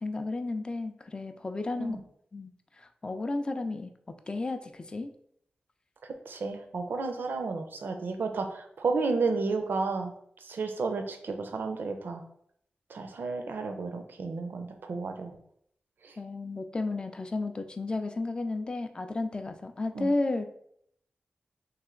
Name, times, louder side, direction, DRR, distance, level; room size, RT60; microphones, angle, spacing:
voice 1, 0.0-2.0 2.3-5.1 16.2-20.5, left 2 dB, 25° left, 8 dB, 0.3 m, -33 dB
voice 2, 6.3-10.1 10.4-12.2 12.9-15.3 16.0-16.2 19.9-20.1, right 4 dB, 75° right, 6 dB, 0.5 m, -32 dB
3.2 x 2.9 x 3.7 m, 0.70 s
wide cardioid pair, 140°, 3 cm